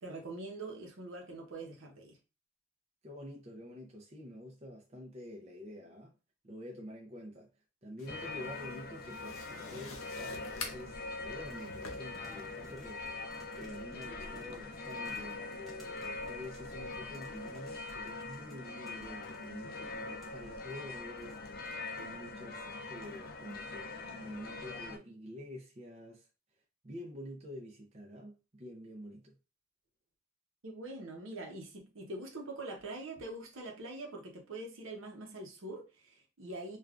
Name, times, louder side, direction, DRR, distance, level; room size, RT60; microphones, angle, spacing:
voice 1, 0.0-2.2 30.6-36.8, right 2 dB, 75° right, 0.8 m, -44 dB
voice 2, 3.0-6.1 6.4-7.5 7.8-13.0 13.5-21.4 21.9-26.3 26.8-29.3, left 1 dB, 30° right, 0.5 m, -48 dB
sound 1, 8.0-13.1, left 4 dB, 90° left, 0.8 m, -49 dB
sound 2, 8.1-25.0, left 3 dB, 45° left, 0.4 m, -43 dB
sound 3, 11.5-22.3 22.8-23.2 23.5-23.6, right 1 dB, ahead, 0.8 m, -58 dB
3.4 x 2.4 x 2.4 m
head